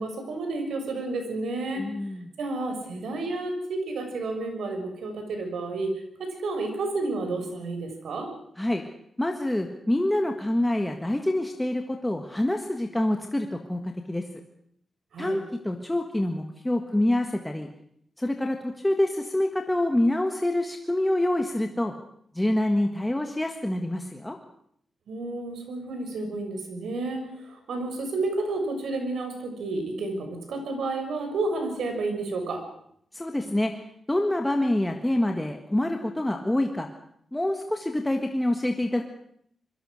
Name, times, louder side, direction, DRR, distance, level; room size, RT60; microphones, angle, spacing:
voice 1, 0.0-1.9 2.4-5.9 6.2-8.3 15.1-15.4 25.1-32.6, right 2 dB, 80° right, 5 dB, 6.3 m, -31 dB
voice 2, 1.8-2.3 8.6-8.8 9.2-13.8 14.1-14.2 15.2-17.7 18.2-21.9 22.3-24.4 33.1-33.7 34.1-36.9 37.3-39.0, left 1 dB, 10° left, 4 dB, 1.5 m, -26 dB
26.5 x 22.0 x 6.5 m, 0.68 s
wide cardioid pair, 160°, 0 cm